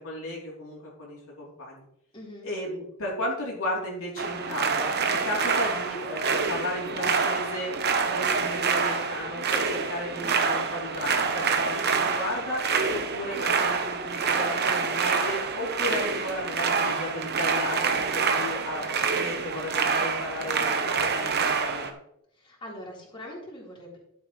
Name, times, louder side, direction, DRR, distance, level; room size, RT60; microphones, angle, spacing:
voice 1, 0.0-1.8 2.4-7.7 8.1-22.0, left 1 dB, 70° left, -4 dB, 3.2 m, -34 dB
voice 2, 2.1-2.5 22.3-24.0, left 1 dB, 25° left, -4 dB, 3.9 m, -42 dB
sound 1, 4.2-21.9, right 5 dB, 50° right, 0.9 m, -27 dB
12.0 x 7.8 x 3.1 m, 0.75 s
head